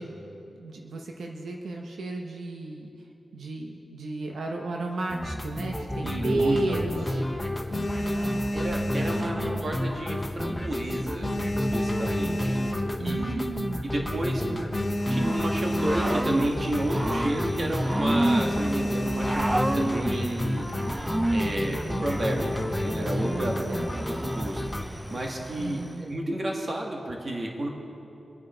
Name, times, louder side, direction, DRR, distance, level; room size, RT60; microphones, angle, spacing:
voice 1, 0.0-7.3 7.9-9.9 13.0-14.6 21.4-22.1 23.2-23.9 25.6-26.1, right 2 dB, 80° right, 1 dB, 1.0 m, -34 dB
sound 1, 5.1-24.8, left 1 dB, 5° left, 1.1 m, -31 dB
voice 2, 6.0-7.1 8.5-11.3 11.6-12.5 13.0-13.4 13.8-14.4 15.1-20.7 21.3-22.5 22.8-23.5 24.0-24.6 25.1-27.7, right 1 dB, 35° right, 0 dB, 2.0 m, -31 dB
sound 2, 6.4-7.1 7.5-10.0 10.3-10.7 11.0-13.2 13.7-13.8 14.0-14.1 14.4-16.6 16.9-17.2 17.5-17.8 18.2-20.0 20.8-21.3, equal, 55° left, 2.0 m, -30 dB
Growling / Cricket, 15.0-26.0, right 1 dB, 15° right, 0.4 m, -31 dB
24.5 x 8.9 x 4.5 m, 2.9 s
wide cardioid pair, 130°, 0 cm